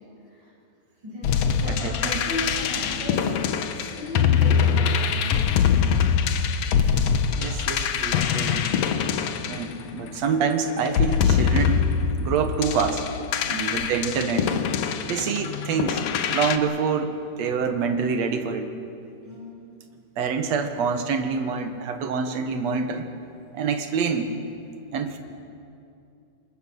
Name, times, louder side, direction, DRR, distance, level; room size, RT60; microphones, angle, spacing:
voice 1, 1.0-3.3 3.8-5.5 13.4-13.8 15.1-15.3 19.2-19.6, left 1 dB, 30° right, -5 dB, 8.2 m, -36 dB
sound 1, 1.2-10.3 10.9-16.6, left 7 dB, 65° left, 1.8 m, -23 dB
voice 2, 1.6-2.3 7.4-8.7 9.5-11.8 12.2-13.1 13.5-14.6 15.1-16.0 16.3-18.7 20.2-23.1 23.5-24.3 24.9-25.2, right 5 dB, 60° right, 7 dB, 2.4 m, -26 dB
25.0 x 21.5 x 6.4 m, 2.5 s
omnidirectional pair, 3.8 m